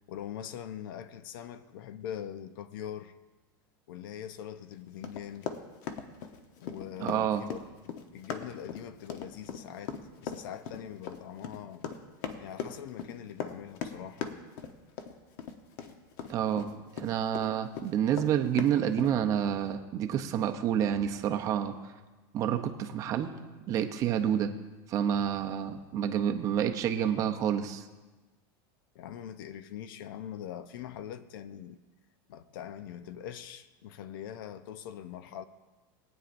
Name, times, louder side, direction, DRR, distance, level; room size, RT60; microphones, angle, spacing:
voice 1, 0.1-3.1 3.9-5.5 6.6-7.6 7.9-11.9 12.4-14.4 28.9-31.8 32.3-35.5, left 10 dB, 70° left, 0.6 m, -42 dB
Run, 5.0-17.5 17.7-19.1, left 7 dB, 55° left, 0.9 m, -39 dB
voice 2, 7.0-7.4 16.3-16.7 17.0-21.8 22.3-23.4 23.7-24.5 24.9-27.8, right 9 dB, 30° right, 0.6 m, -28 dB
20.5 x 9.0 x 2.6 m
supercardioid pair, 170°, 12 cm